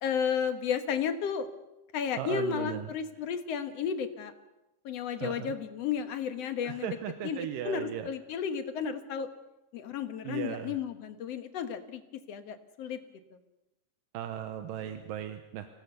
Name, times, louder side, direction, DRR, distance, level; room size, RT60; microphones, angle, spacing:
voice 1, 0.0-1.5 1.9-4.3 4.9-6.9 7.2-9.3 9.7-12.0 12.3-13.0, left 7 dB, 60° left, 8 dB, 2.0 m, -33 dB
voice 2, 2.2-2.9 5.2-5.5 6.6-8.1 10.2-10.8 14.1-15.7, right 10 dB, 85° right, 8 dB, 2.7 m, -37 dB
25.5 x 17.5 x 6.8 m, 0.94 s
omnidirectional pair, 3.9 m